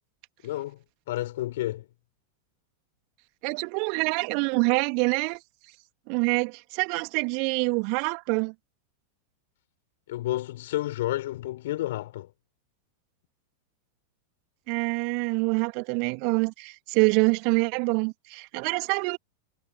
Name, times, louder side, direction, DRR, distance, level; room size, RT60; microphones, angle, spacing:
voice 1, 0.4-1.9 10.1-12.3, left 15 dB, 55° left, 5.6 m, -31 dB
voice 2, 3.4-5.4 6.1-8.5 14.7-19.2, right 40 dB or more, 45° right, 2.7 m, -26 dB
figure-of-eight pair, 90°, 0 cm